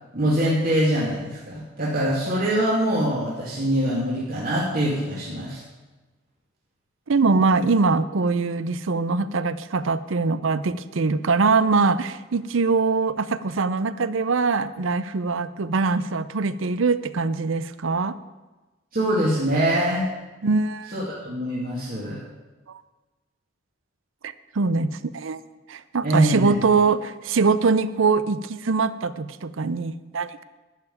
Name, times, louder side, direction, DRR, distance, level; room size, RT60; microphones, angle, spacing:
voice 1, 0.1-5.6 18.9-20.1 20.9-22.2 26.0-26.5, equal, 45° right, -7 dB, 2.4 m, -23 dB
voice 2, 7.1-18.2 20.4-20.9 24.2-25.4 25.7-30.4, right 4 dB, 70° right, 15 dB, 0.6 m, -23 dB
12.0 x 5.8 x 9.1 m, 1.2 s
head